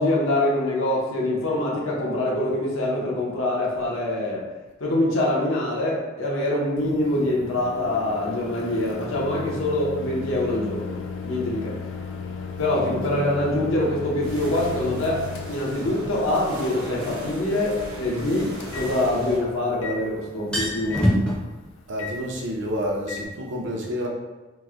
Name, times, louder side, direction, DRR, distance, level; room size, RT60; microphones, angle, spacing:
voice 1, 0.0-4.4 4.8-11.0 11.2-11.7 12.6-21.3, left 1 dB, 80° left, -3 dB, 0.7 m, -24 dB
Microwave oven, 6.8-23.3, left 5 dB, 65° left, 0.3 m, -36 dB
sound 1, 14.2-19.4, equal, 85° right, 0.9 m, -38 dB
sound 2, 16.0-16.1 18.4-19.7 20.0-20.1 20.3-21.4, equal, 5° left, 0.5 m, -25 dB
voice 2, 21.9-24.1, equal, 60° right, -1 dB, 0.6 m, -29 dB
3.0 x 2.1 x 3.5 m, 1.2 s
head